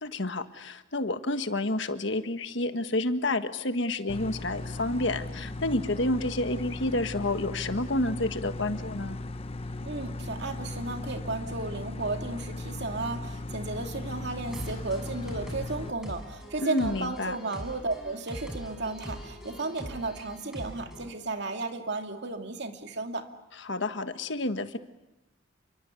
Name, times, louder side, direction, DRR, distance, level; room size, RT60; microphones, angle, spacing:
voice 1, 0.0-9.2 16.6-17.4 23.6-24.8, left 2 dB, 60° left, 9 dB, 1.5 m, -29 dB
sound 1, 4.1-15.9, left 2 dB, 30° left, 0.9 m, -37 dB
voice 2, 9.8-23.3, right 3 dB, 55° right, 4 dB, 2.5 m, -34 dB
sound 2, 14.5-21.1, equal, 5° right, 6.7 m, -42 dB
29.5 x 24.0 x 8.4 m, 0.98 s
head